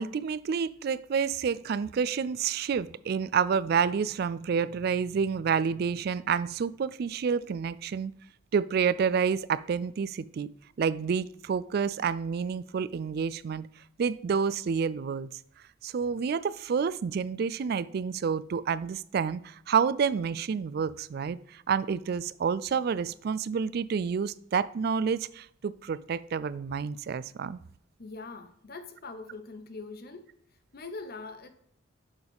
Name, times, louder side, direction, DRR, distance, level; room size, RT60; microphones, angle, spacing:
voice 1, 0.0-8.1 8.5-10.5 10.8-13.7 14.0-15.3 15.8-27.6, right 6 dB, 55° right, 18 dB, 0.3 m, -29 dB
voice 2, 28.0-30.3 30.7-31.5, left 3 dB, 50° left, 9 dB, 0.9 m, -42 dB
7.1 x 6.4 x 3.5 m, 0.68 s
head